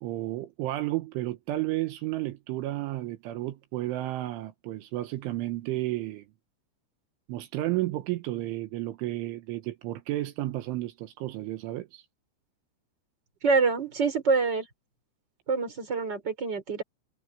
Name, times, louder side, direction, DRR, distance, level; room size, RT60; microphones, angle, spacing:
voice 1, 0.0-6.3 7.3-12.0, right 16 dB, 80° right, 3.6 m, -32 dB
voice 2, 13.4-14.7 15.5-16.8, right 4 dB, 20° right, 5.0 m, -26 dB
omnidirectional pair, 5.5 m